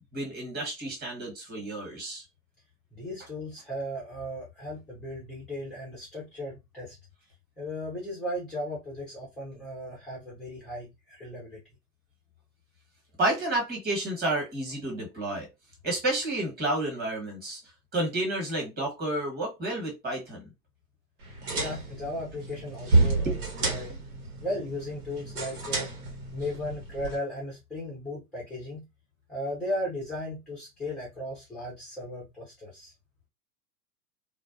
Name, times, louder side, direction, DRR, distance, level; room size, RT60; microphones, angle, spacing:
voice 1, 0.1-2.2 13.2-15.5 15.8-17.6 17.9-20.4 23.1-23.4, right 1 dB, 20° right, 1.3 m, -30 dB
voice 2, 2.9-7.0 7.6-11.6 21.5-23.9 24.4-25.9 26.3-28.8 29.3-32.9, left 1 dB, ahead, 0.5 m, -36 dB
sound 1, 21.2-27.2, right 3 dB, 70° right, 1.2 m, -30 dB
2.4 x 2.2 x 2.5 m
hypercardioid pair, 115°, 46 cm